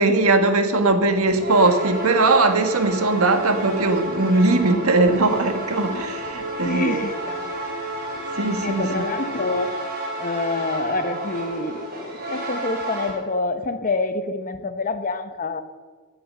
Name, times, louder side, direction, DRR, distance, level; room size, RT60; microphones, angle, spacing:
voice 1, 0.0-7.0 8.3-9.0, right 2 dB, 80° right, 1.5 m, -20 dB
sound 1, 1.2-13.1, right 1 dB, 45° right, 5.0 m, -31 dB
voice 2, 4.6-4.9 6.6-7.6 8.6-9.8 10.2-11.9 12.3-15.6, left 3 dB, 40° left, 1.0 m, -27 dB
16.0 x 8.8 x 6.7 m
head